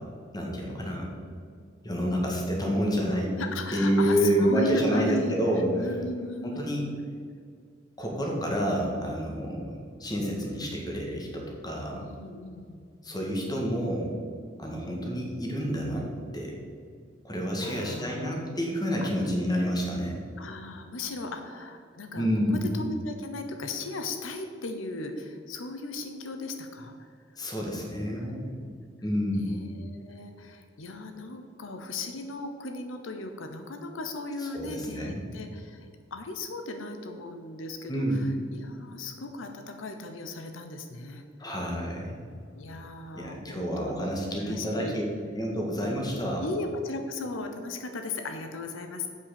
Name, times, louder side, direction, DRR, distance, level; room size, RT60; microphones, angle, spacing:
voice 1, 0.3-1.1 1.8-3.3 3.7-5.7 6.4-6.9 8.0-9.6 10.0-12.0 13.0-14.1 14.6-16.1 16.3-16.5 17.2-20.2 22.2-22.6 27.4-28.5 29.0-29.5 34.5-35.2 37.9-38.3 41.4-42.2 43.1-45.0 45.3-46.4, equal, 20° left, -1 dB, 1.7 m, -28 dB
voice 2, 3.3-5.3 5.8-6.8 11.9-12.8 17.6-18.4 19.0-19.3 20.4-22.3 22.7-27.1 27.6-27.7 28.1-28.7 29.3-41.5 42.5-43.9 44.4-45.0 46.4-49.1, left 2 dB, 85° left, 6 dB, 0.8 m, -37 dB
7.7 x 5.7 x 6.9 m, 2.2 s
head